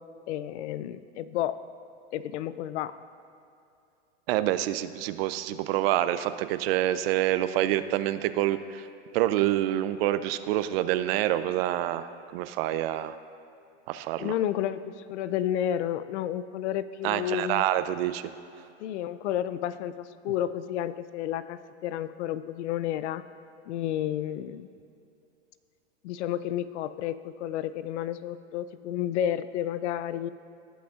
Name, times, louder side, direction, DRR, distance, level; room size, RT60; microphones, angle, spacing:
voice 1, 0.3-1.6 2.1-2.9 14.2-17.6 18.8-23.2 23.7-24.7 26.0-30.3, left 11 dB, 75° left, 15 dB, 0.5 m, -31 dB
voice 2, 4.3-8.9 9.1-13.2 13.9-14.3 17.0-18.2, right 13 dB, 55° right, 13 dB, 0.5 m, -27 dB
17.5 x 6.2 x 2.4 m, 2.6 s
supercardioid pair, 135°, 35 cm